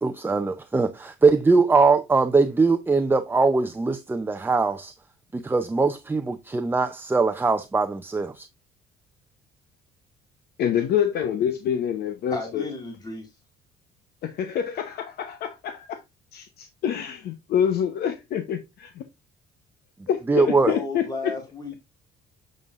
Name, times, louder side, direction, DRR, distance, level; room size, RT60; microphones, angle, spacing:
voice 1, 0.0-4.9 5.3-8.5 20.3-20.7, right 4 dB, 10° right, 0.6 m, -21 dB
voice 2, 10.6-12.6 14.2-16.0 16.3-19.0 20.1-21.3, left 9 dB, 70° left, 0.9 m, -26 dB
voice 3, 12.3-13.3 20.6-21.8, left 2 dB, 25° left, 2.1 m, -33 dB
7.2 x 6.4 x 2.5 m
cardioid pair, 110°, 17 cm